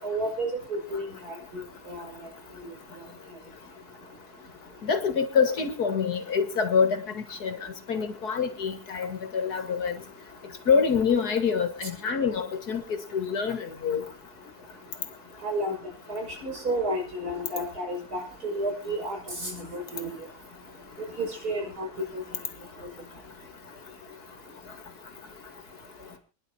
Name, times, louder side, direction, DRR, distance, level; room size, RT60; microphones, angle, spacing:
voice 1, 0.0-2.1 15.4-15.7 16.1-20.1 21.0-21.9 22.1-22.2, right 1 dB, 75° right, 0 dB, 6.2 m, -32 dB
voice 2, 4.8-9.9 10.7-12.8 13.1-14.0, left 6 dB, 80° left, 8 dB, 2.4 m, -26 dB
28.5 x 11.0 x 2.8 m, 0.31 s
omnidirectional pair, 1.6 m